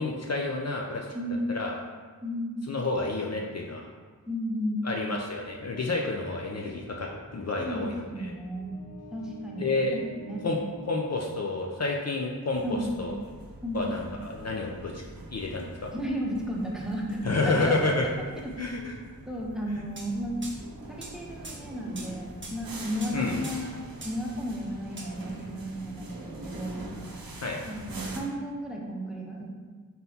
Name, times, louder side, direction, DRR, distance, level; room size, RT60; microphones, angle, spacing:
voice 1, 0.0-1.1 1.5-1.7 2.7-3.8 4.8-7.1 7.3-8.1 9.6-9.9 10.4-10.6 10.9-12.6 13.0-13.1 13.7-14.9 15.3-15.9 17.2-18.1 18.6-19.0 23.1-23.5 27.4-27.6, left 3 dB, 45° left, -1 dB, 0.4 m, -29 dB
voice 2, 1.1-1.5 2.2-2.6 4.3-4.9 7.6-8.7 9.1-10.4 12.6-13.0 13.6-13.9 15.9-18.9 19.3-20.4 20.9-23.7 24.0-26.9 27.6-29.6, equal, ahead, -2 dB, 0.7 m, -34 dB
sound 1, 4.9-11.9, right 1 dB, 70° left, 1.5 m, -49 dB
sound 2, 12.5-28.2, right 2 dB, 75° right, 0.6 m, -44 dB
sound 3, 20.0-20.1 20.4-20.6 21.0-21.1 21.4-21.6 22.0-22.1 22.4-22.6 23.0-23.2 23.4-23.6 24.0-24.2 25.0-25.1, right 2 dB, 35° right, 0.7 m, -41 dB
4.0 x 3.7 x 2.8 m, 1.5 s
wide cardioid pair, 45°, 36 cm